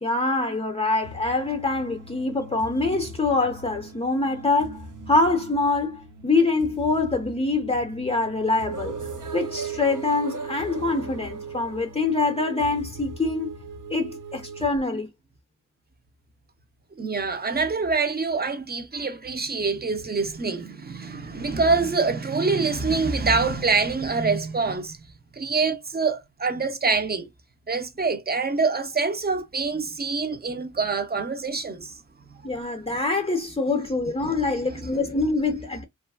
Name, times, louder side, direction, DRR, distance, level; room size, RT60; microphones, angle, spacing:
voice 1, 0.0-9.0 9.3-13.5 13.9-15.1 32.4-35.8, left 3 dB, 20° left, 0.5 m, -25 dB
sound 1, 1.0-14.7, right 4 dB, 75° right, 0.7 m, -39 dB
voice 2, 17.0-25.0 25.3-27.3 27.7-32.0 34.5-34.7, right 4 dB, 30° right, 0.5 m, -25 dB
2.9 x 2.4 x 2.2 m
wide cardioid pair, 115°, 31 cm